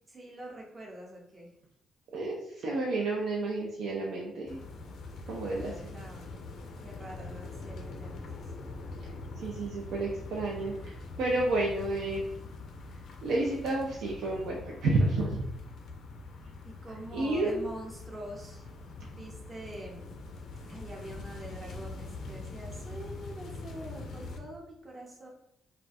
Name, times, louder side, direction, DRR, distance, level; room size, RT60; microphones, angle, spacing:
voice 1, 0.1-1.5 5.5-6.4 6.8-8.5 16.8-18.7 19.0-20.2 20.6-25.3, right 1 dB, 25° right, -2 dB, 0.7 m, -45 dB
voice 2, 2.1-4.6 5.3-5.7 9.0-9.1 9.4-12.3 13.2-15.4 17.1-17.6, right 2 dB, 80° right, -2 dB, 0.3 m, -30 dB
sound 1, 4.5-24.4, left 3 dB, 70° left, 0.4 m, -43 dB
2.4 x 2.1 x 2.6 m, 0.78 s
cardioid pair, 90°, 0 cm